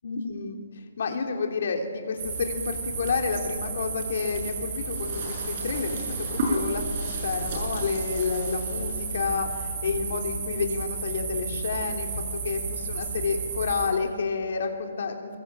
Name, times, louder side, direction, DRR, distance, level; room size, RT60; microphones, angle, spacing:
voice 1, 0.0-0.5 1.0-15.4, left 5 dB, 45° left, 3 dB, 3.3 m, -30 dB
sound 1, 2.2-13.9, right 3 dB, 30° right, 6.3 m, -32 dB
25.0 x 22.0 x 8.8 m, 2.1 s
hypercardioid pair, 180°, 0 cm